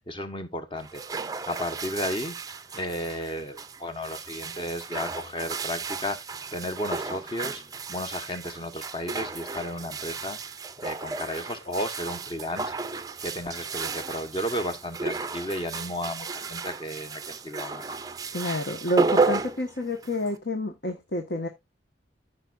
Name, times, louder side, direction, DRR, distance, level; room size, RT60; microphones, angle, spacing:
voice 1, 0.1-1.0 1.5-2.3 2.7-6.2 6.5-7.6 7.9-10.4 10.8-12.7 13.2-17.8, left 1 dB, 30° left, 1.2 m, -33 dB
sound 1, 0.8-20.4, right 4 dB, 20° right, 0.5 m, -33 dB
voice 2, 18.3-21.5, left 1 dB, 65° left, 1.4 m, -29 dB
14.5 x 5.3 x 2.5 m
head